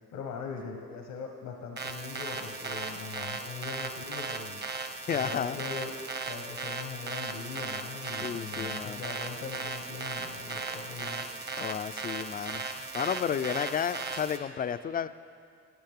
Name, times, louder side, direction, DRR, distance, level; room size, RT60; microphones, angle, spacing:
voice 1, 0.1-4.6 5.1-11.2, left 5 dB, 90° left, 2 dB, 1.1 m, -41 dB
sound 1, 1.8-14.4, right 4 dB, 35° right, 1.1 m, -37 dB
voice 2, 5.1-5.6 8.2-9.0 11.6-15.1, left 8 dB, 30° left, 13 dB, 0.4 m, -32 dB
16.0 x 9.7 x 3.6 m, 2.4 s
cardioid pair, 90°, 30 cm